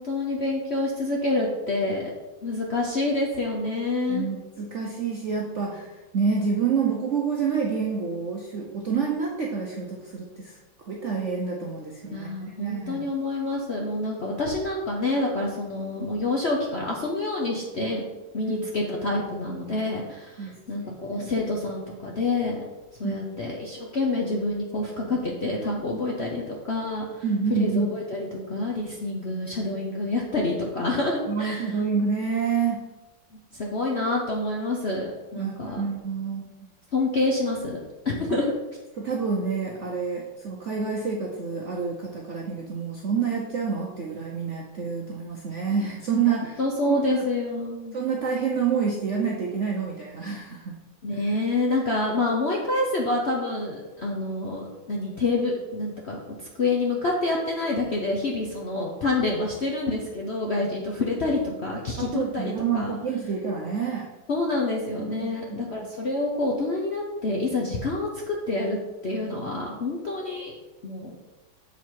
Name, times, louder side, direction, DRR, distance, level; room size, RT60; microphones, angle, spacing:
voice 1, 0.0-2.1 2.4-4.3 12.1-18.0 18.3-22.6 23.0-27.2 27.5-31.8 33.5-35.8 36.9-38.5 46.6-48.0 51.0-56.2 56.6-63.0 64.3-68.8 69.0-70.6 70.8-71.1, left 2 dB, 55° left, -2 dB, 0.7 m, -27 dB
voice 2, 4.1-10.6 10.9-13.1 18.5-18.7 20.4-20.9 21.2-21.3 23.0-23.2 27.2-27.9 31.3-32.8 35.4-36.5 38.3-38.4 39.0-46.6 46.9-47.2 47.9-50.8 62.0-64.1 65.0-65.6, right 5 dB, 65° right, -1 dB, 0.7 m, -28 dB
7.2 x 4.1 x 4.5 m, 1.1 s
omnidirectional pair, 2.2 m